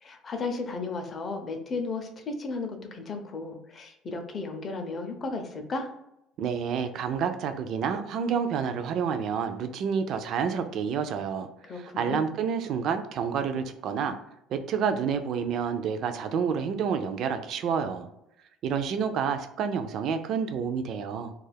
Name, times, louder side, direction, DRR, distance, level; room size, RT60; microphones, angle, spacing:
voice 1, 0.0-5.9 11.6-12.2, left 3 dB, 30° left, 5 dB, 0.5 m, -34 dB
voice 2, 6.4-11.5 11.8-14.2 14.5-18.1 18.6-21.3, right 6 dB, 50° right, 8 dB, 0.3 m, -29 dB
2.3 x 2.3 x 3.3 m, 0.83 s
cardioid pair, 145°, 0 cm